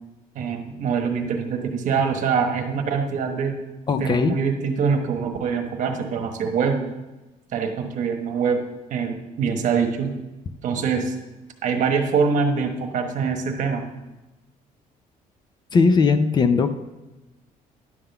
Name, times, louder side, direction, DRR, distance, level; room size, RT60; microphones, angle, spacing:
voice 1, 0.3-3.6 4.0-6.8 7.5-8.6 8.9-10.1 10.6-11.2 11.6-13.9, right 5 dB, 60° right, 5 dB, 1.1 m, -24 dB
voice 2, 3.9-4.4 15.7-16.7, left 4 dB, 30° left, 10 dB, 0.5 m, -18 dB
11.0 x 3.7 x 6.8 m, 1.1 s
cardioid pair, 155°, 15 cm